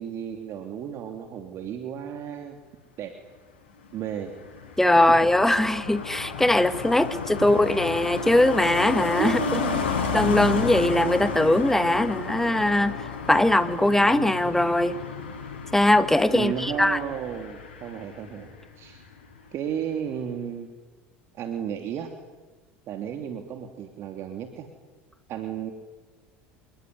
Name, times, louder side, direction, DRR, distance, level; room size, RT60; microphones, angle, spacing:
voice 1, 0.0-2.6 3.0-3.1 3.9-4.3 7.4-7.5 9.2-9.9 16.3-19.0 19.5-20.7 21.3-22.1 22.9-24.7 25.3-25.7, right 9 dB, 50° right, 4 dB, 3.2 m, -33 dB
Car passing by, 3.9-18.6 18.9-19.2, left 5 dB, 90° left, 7.5 m, -32 dB
voice 2, 4.8-9.6 10.1-15.0 15.7-17.0, left 1 dB, 5° left, 9 dB, 2.3 m, -21 dB
27.5 x 21.5 x 9.7 m, 1.2 s
hypercardioid pair, 85°, 6 cm